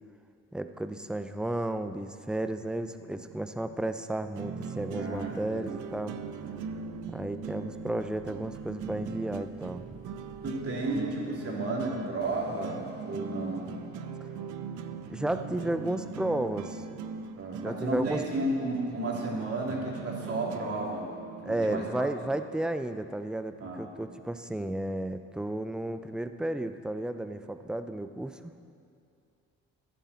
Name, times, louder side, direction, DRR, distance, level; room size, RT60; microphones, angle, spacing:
voice 1, 0.5-6.2 7.1-9.9 14.2-14.3 15.1-16.8 17.6-18.2 21.4-28.5, right 1 dB, 5° right, 10 dB, 0.5 m, -33 dB
sound 1, 3.0-21.8, right 6 dB, 85° right, 0.6 m, -41 dB
voice 2, 5.0-5.7 10.4-13.7 17.4-21.1 21.4-22.1 23.6-23.8, right 2 dB, 50° right, -3 dB, 3.0 m, -33 dB
sound 2, 5.1-17.9, right 5 dB, 35° right, 1.2 m, -51 dB
14.0 x 10.0 x 4.2 m, 2.5 s
cardioid pair, 90°, 30 cm